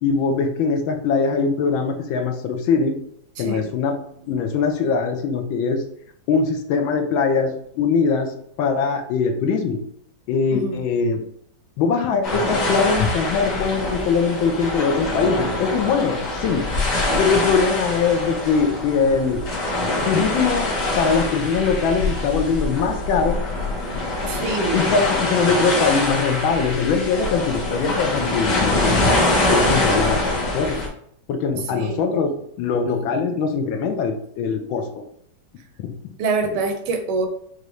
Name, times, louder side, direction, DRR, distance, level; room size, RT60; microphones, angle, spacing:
voice 1, 0.0-3.0 3.4-4.0 4.3-5.8 6.3-8.3 8.6-9.8 10.3-11.2 11.8-16.6 17.2-19.4 20.0-23.4 24.7-29.0 29.5-30.8 31.3-35.0 35.8-35.9, left 5 dB, 75° left, 5 dB, 1.4 m, -22 dB
voice 2, 3.4-3.7 4.2-4.4 10.5-10.8 24.3-25.0 31.7-32.0 36.2-37.3, right 3 dB, 85° right, 5 dB, 1.7 m, -25 dB
sound 1, 12.2-30.9, left 2 dB, 55° left, 1.9 m, -24 dB
6.6 x 2.6 x 3.1 m, 0.66 s
omnidirectional pair, 2.3 m